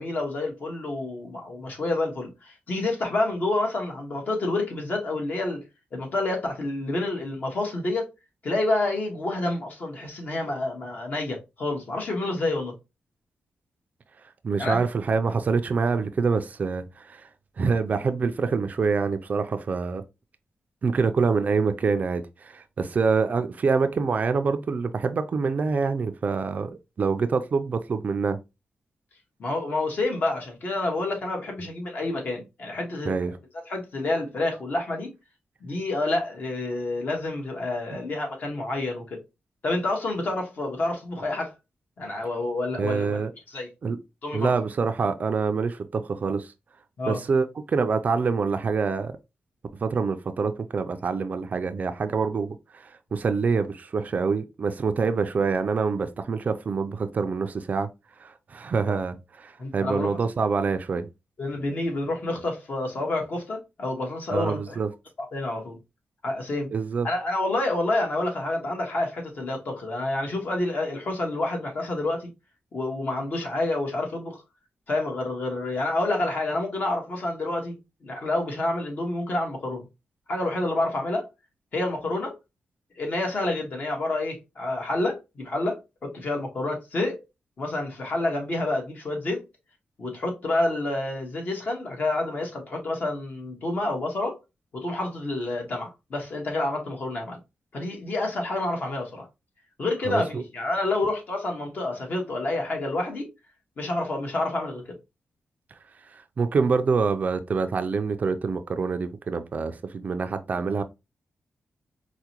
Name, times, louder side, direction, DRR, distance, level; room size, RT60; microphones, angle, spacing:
voice 1, 0.0-5.6 5.9-8.1 8.4-12.7 14.6-14.9 29.4-33.1 33.7-35.1 35.6-39.2 39.6-41.5 42.0-43.7 44.2-44.5 47.0-47.2 58.9-59.0 59.6-60.2 61.4-64.8 65.2-65.8 66.2-66.7 67.0-72.3 72.7-74.4 74.9-79.9 80.3-81.3 81.7-82.3 83.0-87.2 87.6-89.4 90.0-94.4 94.7-97.4 97.7-99.3 99.8-103.3 103.8-105.0, left 2 dB, 50° left, 1.2 m, -28 dB
voice 2, 14.4-17.3 17.6-20.0 20.8-28.4 33.0-33.3 42.8-43.3 43.8-44.0 44.3-46.5 47.1-49.1 49.8-57.9 58.2-61.1 64.3-64.9 66.7-67.1 100.1-100.4 106.1-110.8, right 5 dB, 45° right, 0.4 m, -26 dB
4.6 x 2.2 x 2.8 m
wide cardioid pair, 145°, 4 cm